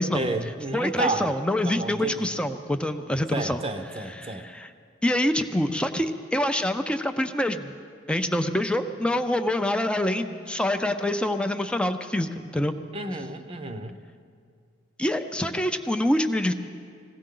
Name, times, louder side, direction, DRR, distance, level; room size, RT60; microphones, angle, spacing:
voice 1, 0.1-1.3 1.6-2.3 3.3-4.5 12.9-13.9, right 2 dB, 30° right, 8 dB, 0.7 m, -30 dB
voice 2, 0.7-3.6 4.1-4.7 5.0-7.7 8.1-12.7 15.0-16.5, left 1 dB, 5° left, 7 dB, 0.5 m, -26 dB
21.0 x 16.0 x 3.8 m, 2.3 s
head